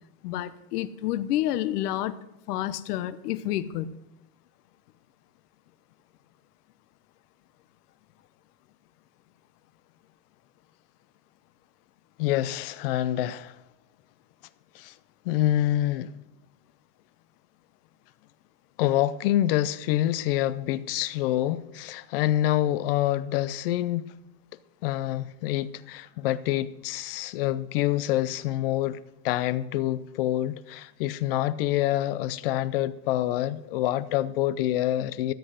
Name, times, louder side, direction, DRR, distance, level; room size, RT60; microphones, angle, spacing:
voice 1, 0.2-2.2 2.5-4.0, left 13 dB, 85° left, 1.0 m, -29 dB
voice 2, 12.2-13.6 14.7-14.9 15.2-16.1 18.8-24.1 24.8-35.3, left 13 dB, 40° left, 0.4 m, -26 dB
13.5 x 8.0 x 6.4 m
supercardioid pair, 175°, 46 cm